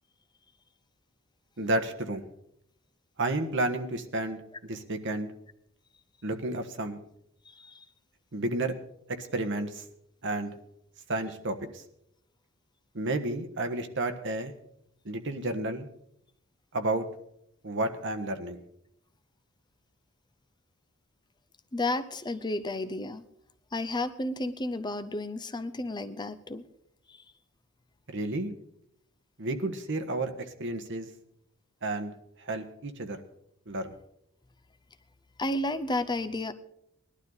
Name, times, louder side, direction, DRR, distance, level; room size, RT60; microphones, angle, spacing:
voice 1, 1.6-2.3 3.2-4.4 4.7-5.3 6.2-7.0 8.3-8.7 9.1-9.8 10.2-10.5 11.1-11.8 12.9-14.5 15.0-15.9 16.7-17.1 17.6-18.6 28.1-28.5 29.4-31.1 31.8-32.1 32.4-33.2 33.7-33.9, right 2 dB, 60° right, 7 dB, 1.4 m, -31 dB
voice 2, 7.4-7.9 21.7-23.2 23.7-26.6 27.1-27.2 35.4-36.5, left 2 dB, 20° left, 10 dB, 0.7 m, -32 dB
19.5 x 12.0 x 4.0 m, 0.76 s
head